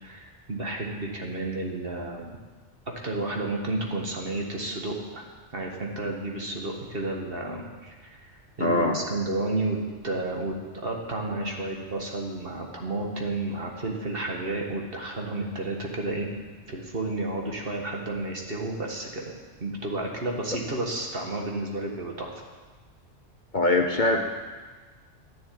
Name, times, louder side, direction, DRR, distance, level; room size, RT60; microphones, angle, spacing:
voice 1, 0.0-2.3 3.0-9.8 10.0-16.3 16.7-19.3 19.6-22.3, right 2 dB, 50° right, 0 dB, 2.0 m, -31 dB
voice 2, 8.6-9.0 23.5-24.2, left 2 dB, 45° left, 4 dB, 1.0 m, -22 dB
12.0 x 7.3 x 9.7 m, 1.4 s
omnidirectional pair, 1.3 m